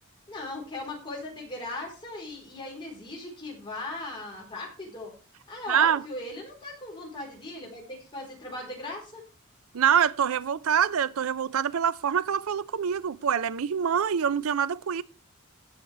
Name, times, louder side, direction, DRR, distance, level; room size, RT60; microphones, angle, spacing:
voice 1, 0.3-5.1 5.5-7.8 8.1-9.2, left 2 dB, 25° left, 4.0 m, -38 dB
voice 2, 5.7-6.0 9.7-15.0, right 8 dB, 70° right, 0.5 m, -25 dB
15.0 x 6.4 x 3.3 m
head